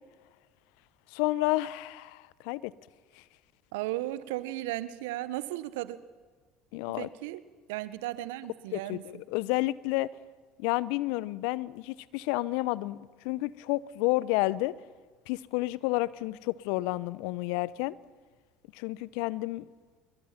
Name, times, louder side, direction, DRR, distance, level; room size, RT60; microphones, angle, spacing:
voice 1, 1.1-2.7 6.7-7.1 8.7-10.1 10.6-14.7 15.3-18.0 18.7-19.6, left 19 dB, 70° left, 0.7 m, -30 dB
voice 2, 3.7-6.0 6.9-7.4 7.7-9.0, right 16 dB, 75° right, 1.0 m, -35 dB
26.0 x 22.5 x 5.8 m
hypercardioid pair, 70°, 0 cm